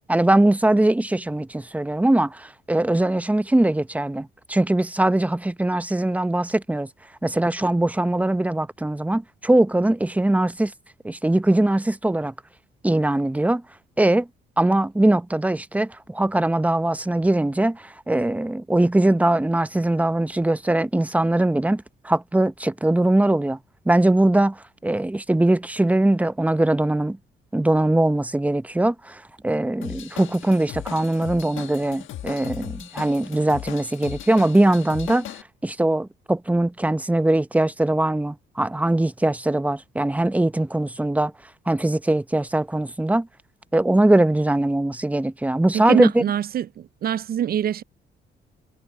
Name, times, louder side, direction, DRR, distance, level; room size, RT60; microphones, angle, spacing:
voice 1, 0.1-6.9 7.2-10.7 11.0-12.3 12.8-13.6 14.0-14.3 14.6-23.6 23.9-27.2 27.5-35.3 35.6-41.3 41.7-43.3 43.7-46.2, right 1 dB, 5° right, 0.7 m, -21 dB
Drum kit / Drum, 29.8-35.4, left 12 dB, 80° left, 1.4 m, -37 dB
voice 2, 45.9-47.8, right 10 dB, 50° right, 0.4 m, -24 dB
cardioid pair, 90°, 20 cm